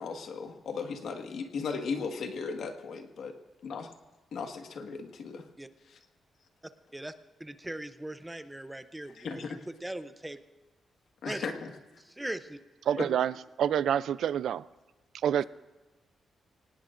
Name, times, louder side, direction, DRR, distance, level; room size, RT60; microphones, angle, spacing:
voice 1, 0.0-3.4 3.6-3.9 4.3-5.4 9.1-9.6 11.2-11.7 13.0-13.1, left 5 dB, 65° left, 5 dB, 1.7 m, -36 dB
voice 2, 7.4-10.4 11.3-11.5 12.0-12.6, right 1 dB, 5° right, 10 dB, 0.6 m, -40 dB
voice 3, 12.9-14.7 15.2-15.4, right 9 dB, 80° right, 17 dB, 0.4 m, -27 dB
25.0 x 18.5 x 2.6 m, 1.2 s
wide cardioid pair, 160°, 0 cm